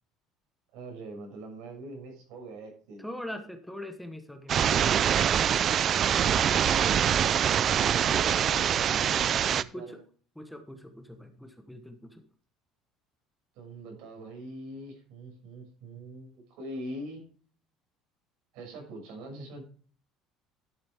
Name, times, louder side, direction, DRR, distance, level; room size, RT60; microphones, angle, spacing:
voice 1, 0.7-3.0 7.7-10.0 13.5-17.2 18.5-19.7, right 2 dB, 75° right, 2 dB, 6.3 m, -42 dB
voice 2, 3.0-5.4 9.7-10.0 10.4-12.2, left 1 dB, ahead, 6 dB, 1.0 m, -42 dB
sound 1, 4.5-9.6, right 9 dB, 35° right, 0.4 m, -24 dB
11.5 x 8.8 x 3.5 m, 0.42 s
cardioid pair, 160°, 0 cm